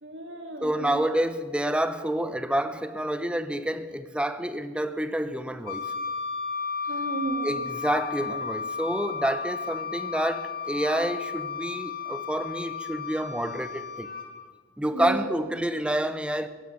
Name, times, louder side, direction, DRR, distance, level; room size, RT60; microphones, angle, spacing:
voice 1, 0.0-1.0 2.2-2.3 6.9-7.6 14.9-15.3, right 2 dB, 65° right, 2.3 m, -33 dB
voice 2, 0.6-5.9 7.4-14.1 14.8-16.5, right 1 dB, 5° right, 0.6 m, -28 dB
Wind instrument woodwind instrument, 5.7-14.3, left 5 dB, 50° left, 2.4 m, -34 dB
15.5 x 11.5 x 6.9 m
head